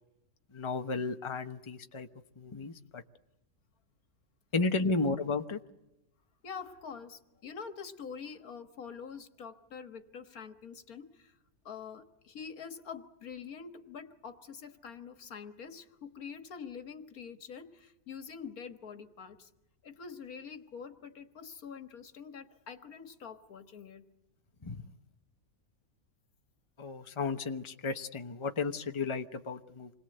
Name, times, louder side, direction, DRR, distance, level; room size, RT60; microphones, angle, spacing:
voice 1, 0.5-2.1 2.4-3.0 4.5-5.6 24.6-24.8 26.8-29.9, left 3 dB, 25° left, 6 dB, 1.1 m, -33 dB
voice 2, 6.4-11.1 11.7-19.5 19.8-24.0, left 6 dB, 85° left, 8 dB, 2.0 m, -45 dB
27.5 x 21.5 x 7.9 m, 0.91 s
omnidirectional pair, 1.5 m